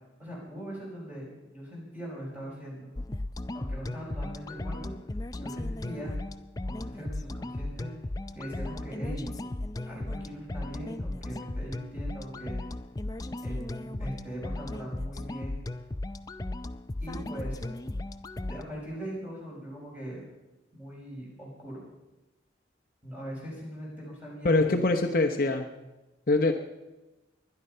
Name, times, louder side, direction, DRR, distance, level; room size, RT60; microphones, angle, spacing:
voice 1, 0.2-2.9 3.5-4.9 5.4-6.2 6.7-7.9 8.3-9.3 9.8-12.6 13.4-15.6 17.0-17.7 18.4-20.2 20.7-21.8 23.0-24.8, equal, 10° right, -5 dB, 6.2 m, -40 dB
sound 1, 3.0-18.6, left 1 dB, 20° left, 0.4 m, -36 dB
voice 2, 24.4-25.7 26.3-26.5, left 2 dB, 45° left, 5 dB, 0.9 m, -23 dB
20.5 x 11.0 x 5.6 m, 1.1 s
head